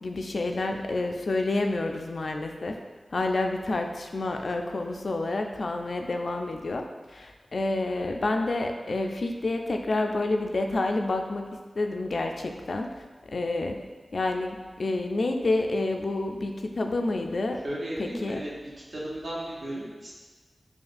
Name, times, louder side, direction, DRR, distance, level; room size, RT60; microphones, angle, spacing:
voice 1, 0.0-2.8 3.1-11.4 11.8-13.0 13.3-13.8 14.1-17.6 18.0-18.4, left 2 dB, 70° left, 4 dB, 0.3 m, -29 dB
voice 2, 17.6-18.5 18.9-20.1, right 1 dB, 65° right, -6 dB, 1.0 m, -35 dB
5.2 x 2.4 x 2.5 m, 1.3 s
wide cardioid pair, 90°, 0 cm